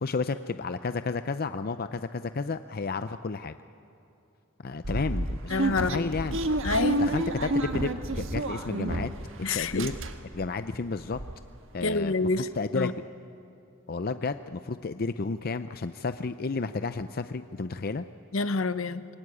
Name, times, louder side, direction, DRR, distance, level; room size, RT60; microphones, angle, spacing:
voice 1, 0.0-3.5 4.6-6.4 7.0-9.1 9.5-9.9 10.3-11.2 11.7-13.0 13.9-18.0, left 4 dB, 45° left, 11 dB, 0.6 m, -32 dB
sound 1, 4.8-9.3 9.6-10.5 10.8-10.9 11.1-11.4, right 1 dB, 65° right, 1.5 m, -30 dB
voice 2, 5.5-6.2 6.6-7.0 9.4-9.9 11.8-12.5 12.7-12.9 18.3-19.1, left 3 dB, 70° left, 13 dB, 0.9 m, -27 dB
26.0 x 21.5 x 9.8 m, 2.8 s
head